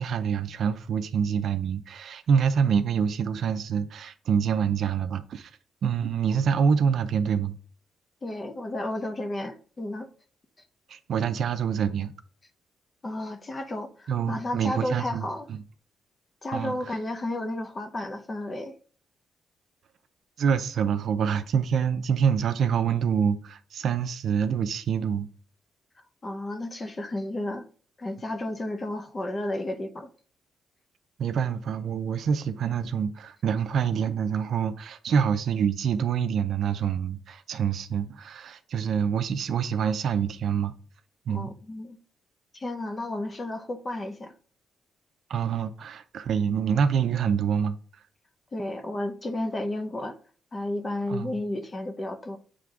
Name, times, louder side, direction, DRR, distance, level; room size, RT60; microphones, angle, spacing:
voice 1, 0.0-5.5 5.8-7.5 10.9-12.1 14.1-15.6 16.5-16.8 20.4-25.3 31.2-40.7 41.3-41.5 45.3-47.8 51.1-51.3, right 7 dB, 55° right, 0.5 m, -26 dB
voice 2, 8.2-10.1 13.0-15.5 16.4-18.7 26.2-27.7 28.0-30.1 41.3-42.0 42.5-44.3 48.5-50.2 50.5-52.4, left 1 dB, 20° left, 0.7 m, -32 dB
7.7 x 3.4 x 3.6 m
cardioid pair, 155°, 0 cm